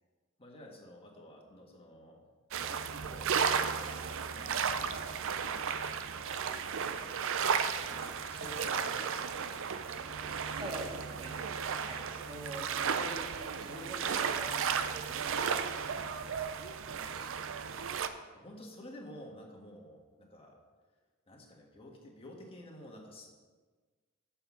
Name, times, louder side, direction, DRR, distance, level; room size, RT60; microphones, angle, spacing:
voice 1, 0.4-2.2 2.6-5.8 6.3-7.2 7.7-10.5 14.5-14.7 18.3-20.6 21.3-23.3, left 1 dB, 25° left, -1 dB, 1.6 m, -52 dB
sound 1, 2.5-18.1, right 6 dB, 65° right, 0.5 m, -34 dB
voice 2, 10.6-11.3 11.8-16.1 16.9-17.9, right 1 dB, 25° right, -3 dB, 2.0 m, -46 dB
7.0 x 5.7 x 7.1 m, 1.4 s
head